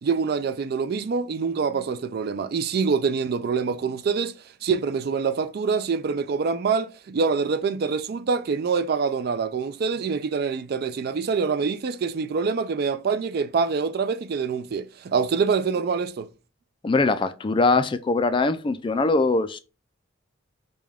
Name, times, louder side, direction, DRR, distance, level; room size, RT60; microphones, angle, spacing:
voice 1, 0.0-4.3 4.6-16.3, right 5 dB, 50° right, 0.3 m, -25 dB
voice 2, 16.8-19.6, left 3 dB, 25° left, 0.3 m, -22 dB
5.1 x 2.2 x 3.5 m
head